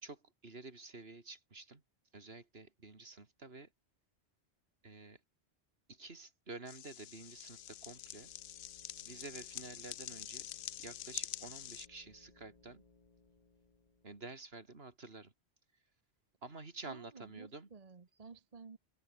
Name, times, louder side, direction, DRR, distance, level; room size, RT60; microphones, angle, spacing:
voice 1, 0.0-1.8 2.1-3.7 4.8-5.2 5.9-8.3 9.0-10.5 10.8-12.8 14.0-15.3 16.4-17.7, right 3 dB, 65° right, 2.9 m, -50 dB
sound 1, 6.7-11.9, left 11 dB, 65° left, 0.7 m, -46 dB
sound 2, 6.7-14.5, left 3 dB, 35° left, 1.7 m, -66 dB
voice 2, 16.8-18.8, right 4 dB, 40° right, 1.0 m, -53 dB
open air
omnidirectional pair, 1.1 m